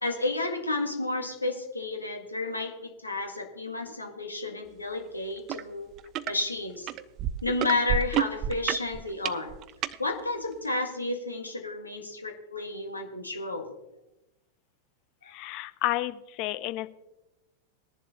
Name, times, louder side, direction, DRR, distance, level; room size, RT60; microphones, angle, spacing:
voice 1, 0.0-5.9 6.3-6.9 7.4-9.5 10.0-13.7, left 2 dB, 80° left, 4 dB, 1.8 m, -31 dB
sound 1, 5.5-5.6 6.0-6.3 6.9-10.0 10.7-10.8, right 10 dB, 35° right, 0.5 m, -29 dB
voice 2, 15.3-16.9, left 16 dB, 40° left, 15 dB, 0.6 m, -31 dB
21.0 x 11.0 x 2.9 m, 0.94 s
figure-of-eight pair, 90°, 0 cm